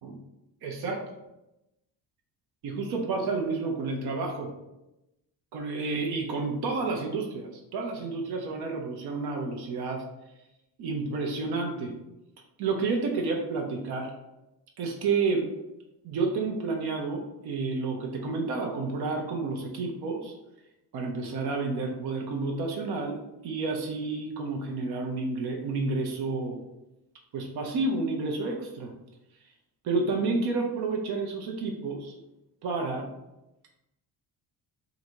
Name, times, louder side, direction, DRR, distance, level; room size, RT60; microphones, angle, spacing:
voice 1, 0.6-1.0 2.6-4.5 5.5-10.1 10.8-11.9 12.6-14.1 14.8-15.5 16.0-20.3 20.9-23.2 23.4-26.6 27.3-28.9 29.8-32.2 32.6-33.1, right 3 dB, 90° right, 1 dB, 0.8 m, -30 dB
3.8 x 2.7 x 4.5 m, 0.93 s
cardioid pair, 165°, 37 cm